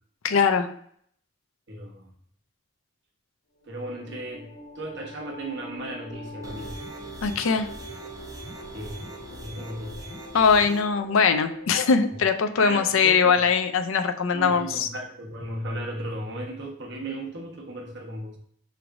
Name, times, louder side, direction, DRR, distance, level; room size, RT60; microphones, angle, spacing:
voice 1, 0.2-0.7 7.2-7.7 10.3-14.9, left 5 dB, 75° left, 8 dB, 0.4 m, -21 dB
voice 2, 1.7-2.1 3.7-4.5 4.7-6.8 8.7-10.0 12.6-13.4 14.3-18.4, right 1 dB, 55° right, -1 dB, 1.1 m, -36 dB
sound 1, 3.6-13.9, equal, 55° left, 0.8 m, -44 dB
sound 2, 6.4-10.8, right 1 dB, 15° right, 0.5 m, -42 dB
5.7 x 3.2 x 2.6 m, 0.63 s
head